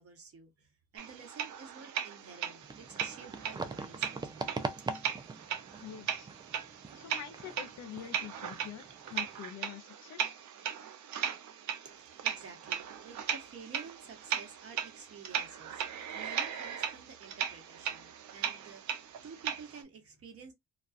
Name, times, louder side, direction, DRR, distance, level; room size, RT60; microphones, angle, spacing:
voice 1, 0.0-5.0 11.8-15.8 16.1-20.5, right 5 dB, 50° right, 1.0 m, -51 dB
sound 1, 1.0-19.8, right 8 dB, 70° right, 0.6 m, -38 dB
sound 2, 2.6-9.4, right 3 dB, 15° right, 0.4 m, -43 dB
voice 2, 5.8-6.3 6.9-10.4, left 10 dB, 65° left, 0.7 m, -46 dB
2.4 x 2.2 x 2.4 m
cardioid pair, 90°, 30 cm